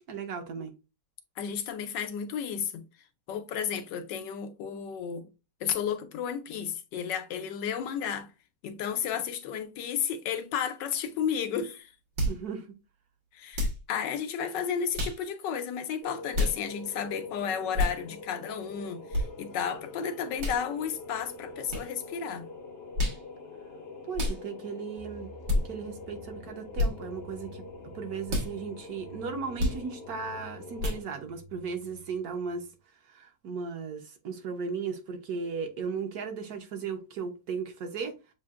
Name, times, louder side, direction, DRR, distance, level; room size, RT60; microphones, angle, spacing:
voice 1, 0.1-0.7 12.2-12.7 24.1-25.3 25.6-32.7 33.0-38.1, right 5 dB, 60° right, 1.3 m, -36 dB
voice 2, 1.4-2.8 3.3-5.3 5.6-8.3 8.6-11.9 13.3-22.5, left 8 dB, 85° left, 1.4 m, -33 dB
sound 1, 12.2-12.4 13.5-13.8 14.9-15.2 16.3-16.6 17.7-18.0 19.1-19.3 20.4-20.6 21.7-21.9 22.9-23.2 24.1-24.4 25.5-25.6 26.7-26.9 28.3-28.5 29.6-29.8 30.8-31.0, left 1 dB, 80° right, 2.2 m, -28 dB
sound 2, 16.0-31.0, left 3 dB, 50° left, 0.7 m, -45 dB
sound 3, 25.0-32.7, right 1 dB, 25° left, 0.3 m, -51 dB
7.4 x 2.5 x 2.4 m
omnidirectional pair, 1.9 m